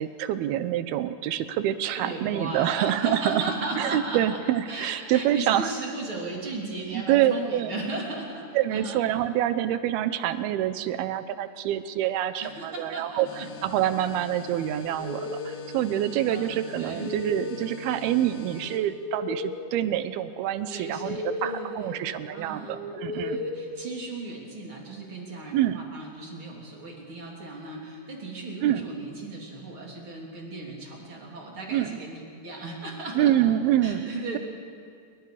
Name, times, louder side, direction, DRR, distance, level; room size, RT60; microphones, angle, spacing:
voice 1, 0.0-3.4 3.8-5.7 6.9-7.7 8.5-23.4 25.5-25.8 28.6-28.9 31.7-32.0 33.2-34.1, right 12 dB, 80° right, 12 dB, 2.7 m, -26 dB
voice 2, 1.9-4.4 4.7-9.0 12.4-13.5 16.3-17.1 20.7-22.8 23.1-33.3 33.8-34.4, right 2 dB, 35° right, -2 dB, 3.7 m, -36 dB
sound 1, 13.2-18.8, left 7 dB, 65° left, 3.4 m, -44 dB
sound 2, 14.8-24.5, left 2 dB, 25° left, 3.8 m, -37 dB
27.0 x 23.5 x 5.0 m, 2.4 s
omnidirectional pair, 4.6 m